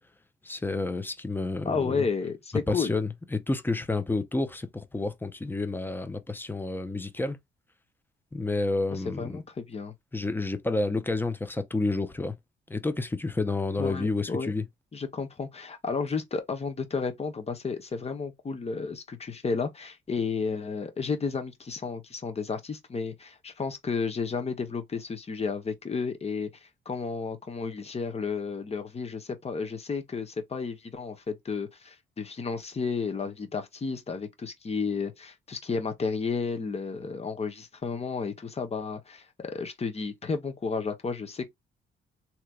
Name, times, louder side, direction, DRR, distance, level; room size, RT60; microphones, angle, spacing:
voice 1, 0.4-2.1 2.7-7.4 8.3-9.4 10.1-12.3 12.7-14.6, left 2 dB, 10° left, 0.7 m, -30 dB
voice 2, 1.6-2.9 8.9-9.9 13.8-14.5 14.9-41.5, left 5 dB, 30° left, 1.1 m, -32 dB
3.3 x 2.9 x 2.4 m
cardioid pair, 90°, 20 cm